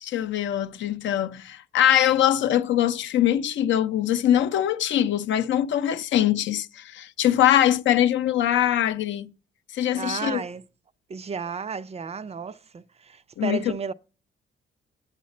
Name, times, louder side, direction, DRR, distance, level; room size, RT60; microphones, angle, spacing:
voice 1, 0.0-9.3 9.7-10.4 13.4-13.6, left 11 dB, 70° left, 0.6 m, -22 dB
voice 2, 9.9-10.6 11.1-13.9, right 5 dB, 30° right, 0.4 m, -33 dB
7.9 x 7.4 x 4.2 m
cardioid pair, 90°, 20 cm